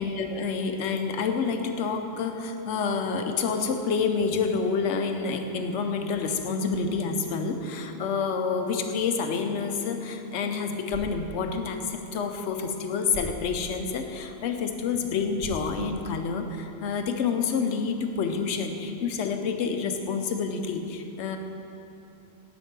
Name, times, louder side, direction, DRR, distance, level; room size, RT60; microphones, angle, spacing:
voice 1, 0.0-21.4, left 5 dB, 70° left, 5 dB, 1.0 m, -28 dB
sound 1, 10.7-16.7, right 1 dB, 75° right, 1.4 m, -45 dB
10.0 x 4.4 x 5.9 m, 2.8 s
omnidirectional pair, 1.3 m